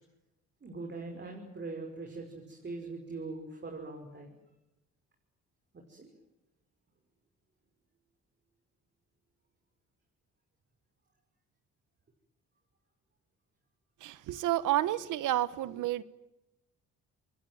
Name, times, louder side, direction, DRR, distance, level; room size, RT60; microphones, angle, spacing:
voice 1, 0.6-4.4 5.9-6.1, right 3 dB, 35° right, 5.7 m, -42 dB
voice 2, 14.0-16.0, right 14 dB, 85° right, 1.2 m, -30 dB
27.5 x 22.0 x 9.4 m
cardioid pair, 90°, 30 cm